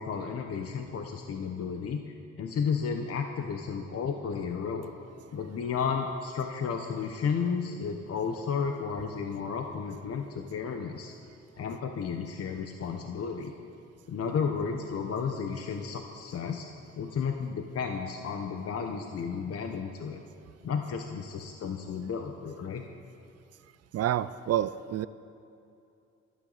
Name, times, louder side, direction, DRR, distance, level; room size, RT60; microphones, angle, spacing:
voice 1, 0.0-2.0 2.4-4.9 5.3-11.1 11.6-13.5 14.1-16.7 17.0-20.2 20.6-22.8, left 6 dB, 50° left, 4 dB, 0.9 m, -33 dB
voice 2, 23.9-25.1, right 12 dB, 55° right, 16 dB, 0.4 m, -28 dB
25.5 x 9.4 x 4.0 m, 2.6 s
cardioid pair, 90°, 30 cm